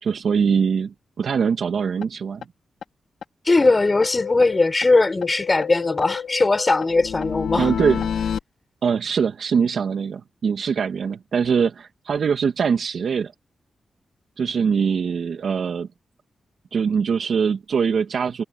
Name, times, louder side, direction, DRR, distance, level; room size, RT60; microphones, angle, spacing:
voice 1, 0.0-2.4 7.6-8.0 8.8-13.3 14.4-15.9 16.7-18.4, right 6 dB, 70° right, 2.5 m, -22 dB
sound 1, 2.0-2.1 2.4-2.5 2.8-2.9 3.2-3.3 3.6-4.9 5.2-8.4, left 7 dB, 85° left, 4.1 m, -29 dB
voice 2, 3.4-7.7, left 3 dB, 30° left, 5.1 m, -19 dB
cardioid pair, 90°, 0 cm